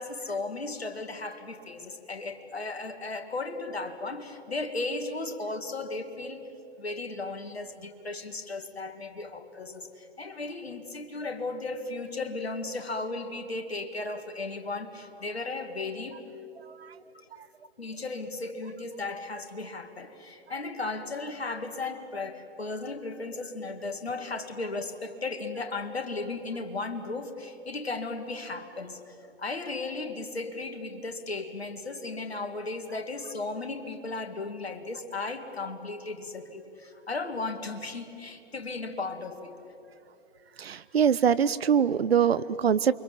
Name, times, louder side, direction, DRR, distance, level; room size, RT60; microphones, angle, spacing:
voice 1, 0.0-6.4 6.8-16.2 17.8-39.6, left 3 dB, 75° left, 6 dB, 2.5 m, -35 dB
voice 2, 40.6-42.9, right 7 dB, 75° right, 16 dB, 0.7 m, -23 dB
29.0 x 24.5 x 7.4 m, 2.8 s
figure-of-eight pair, 110°, 31 cm